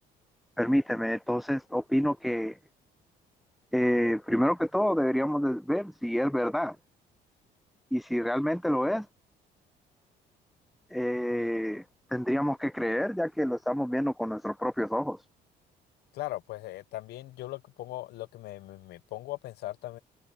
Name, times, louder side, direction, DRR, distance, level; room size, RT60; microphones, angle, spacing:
voice 1, 0.6-2.5 3.7-6.8 7.9-9.1 10.9-11.8 12.1-15.2, equal, ahead, 0.6 m, -28 dB
voice 2, 16.1-20.0, left 16 dB, 75° left, 0.8 m, -39 dB
cardioid pair, 110°, 17 cm